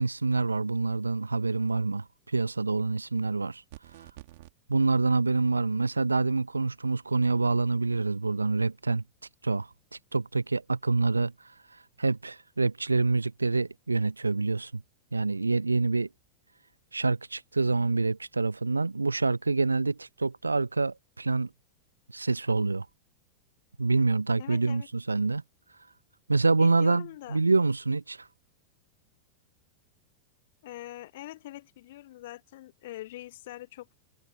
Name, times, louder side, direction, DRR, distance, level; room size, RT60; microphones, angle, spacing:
voice 1, 0.0-3.6 4.7-9.0 9.4-9.7 10.1-11.3 12.0-14.8 15.1-16.1 16.9-21.5 22.1-22.9 23.8-25.4 26.3-28.3, right 3 dB, 80° right, 0.3 m, -26 dB
sound 1, 3.7-4.5, right 18 dB, 50° right, 3.8 m, -48 dB
voice 2, 24.4-24.9 26.6-27.4 30.6-34.0, left 15 dB, 55° left, 0.9 m, -43 dB
figure-of-eight pair, 90°, 0 cm